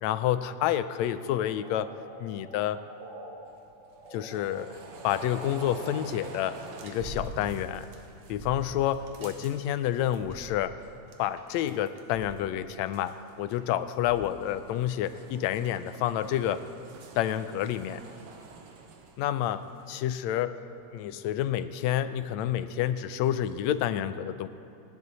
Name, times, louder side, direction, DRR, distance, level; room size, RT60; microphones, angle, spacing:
voice 1, 0.0-1.9 2.2-2.8 4.1-4.8 5.0-7.9 8.3-10.8 11.2-16.6 17.2-18.0 19.2-20.6 20.9-24.5, left 11 dB, 80° left, 12 dB, 1.8 m, -29 dB
sound 1, 1.3-3.4 3.7-5.8, right 1 dB, 30° right, 2.1 m, -47 dB
sound 2, 3.5-10.5 10.8-12.4 12.7-19.9, right 4 dB, 70° right, 2.3 m, -49 dB
sound 3, 7.0-7.6 8.3-8.8 10.1-10.9 12.1-12.6 14.0-14.5 16.8-16.9, equal, 45° right, 4.5 m, -42 dB
29.0 x 10.5 x 4.1 m, 2.5 s
omnidirectional pair, 3.3 m